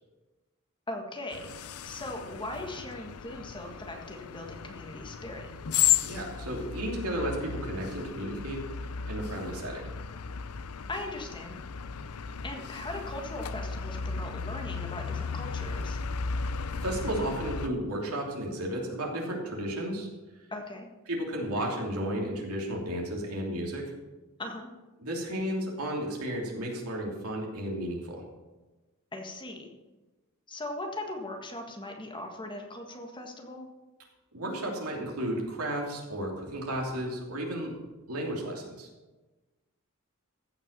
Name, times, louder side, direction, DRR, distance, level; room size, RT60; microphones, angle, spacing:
voice 1, 0.9-1.5 1.8-5.5 10.9-11.6 12.4-16.0 20.5-20.9 24.4-24.7 29.1-29.7 30.5-33.7, left 1 dB, 20° left, 3 dB, 1.6 m, -39 dB
sound 1, 1.3-17.7, left 7 dB, 80° left, 0.6 m, -34 dB
voice 2, 6.0-8.6 9.1-9.9 16.8-20.1 21.1-23.9 25.0-28.2 34.3-37.7 38.1-38.9, right 1 dB, 80° right, -1 dB, 3.0 m, -33 dB
15.5 x 6.1 x 6.7 m, 1.2 s
head